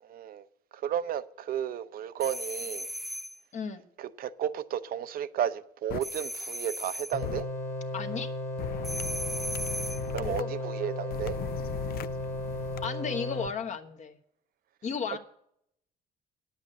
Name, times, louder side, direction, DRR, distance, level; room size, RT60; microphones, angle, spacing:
voice 1, 0.1-0.4 0.7-2.9 4.0-7.5 10.1-11.4, right 9 dB, 60° right, 0.7 m, -33 dB
sound 1, 2.2-3.4 6.0-7.2 8.8-10.1, right 1 dB, ahead, 0.5 m, -37 dB
voice 2, 3.5-3.8 7.9-8.3 10.2-10.5 12.8-14.2 14.8-15.2, left 6 dB, 45° left, 1.1 m, -34 dB
sound 2, 5.9-6.0 7.2-7.4 8.6-10.4 11.1-12.8, left 12 dB, 65° left, 0.5 m, -38 dB
sound 3, 7.1-13.5, left 1 dB, 15° left, 1.3 m, -35 dB
9.8 x 8.3 x 7.7 m
cardioid pair, 110°, 17 cm